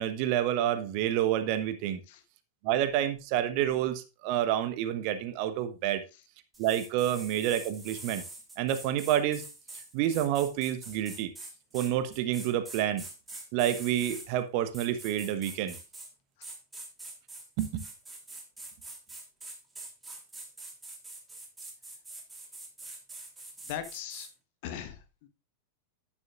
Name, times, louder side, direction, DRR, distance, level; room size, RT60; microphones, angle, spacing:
voice 1, 0.0-2.0 2.6-6.0 6.6-8.2 8.6-9.4 9.9-11.3 11.7-13.0 13.5-15.8 17.6-17.8, right 11 dB, 45° right, 1.1 m, -28 dB
sound 1, 6.5-14.3 14.7-16.1 16.4-24.3, right 2 dB, 10° right, 3.0 m, -45 dB
voice 2, 23.7-24.3 24.6-25.3, left 10 dB, 50° left, 1.3 m, -39 dB
10.5 x 10.0 x 2.5 m
figure-of-eight pair, 90°, 0 cm